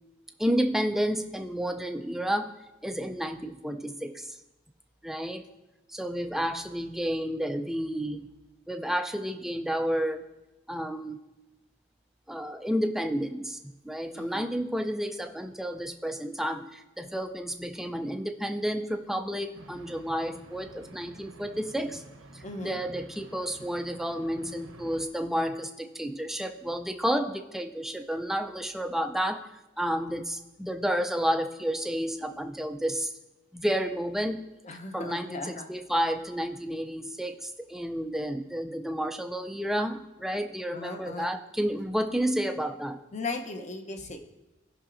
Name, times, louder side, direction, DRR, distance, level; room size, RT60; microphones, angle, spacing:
voice 1, 0.4-2.5 2.8-4.4 5.0-5.5 5.9-8.3 8.7-10.2 10.7-11.2 12.3-13.6 13.8-22.0 22.3-29.5 29.8-33.1 33.5-34.5 34.9-43.0, equal, ahead, 6 dB, 0.3 m, -31 dB
voice 2, 14.1-14.4 22.4-22.8 34.6-35.7 40.7-41.3 43.1-44.2, left 3 dB, 35° left, 5 dB, 0.7 m, -37 dB
sound 1, 19.5-25.1, right 2 dB, 75° right, 0.8 m, -49 dB
16.5 x 5.8 x 2.5 m, 1.0 s
head